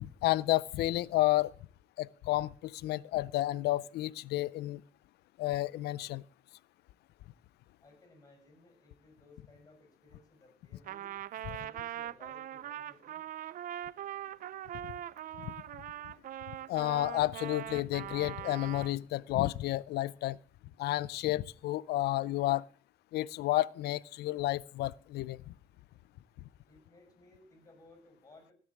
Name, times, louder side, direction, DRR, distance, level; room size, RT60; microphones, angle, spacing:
voice 1, 0.0-1.5 2.0-4.8 5.4-6.2 15.4-15.5 16.7-20.4 20.8-22.6 23.1-25.5, left 16 dB, 75° left, 0.5 m, -31 dB
voice 2, 7.8-11.1 11.5-13.2 26.6-28.5, left 2 dB, 20° left, 6.3 m, -60 dB
Trumpet, 10.9-19.0, right 12 dB, 55° right, 0.5 m, -41 dB
16.0 x 6.8 x 7.3 m
cardioid pair, 110°, 17 cm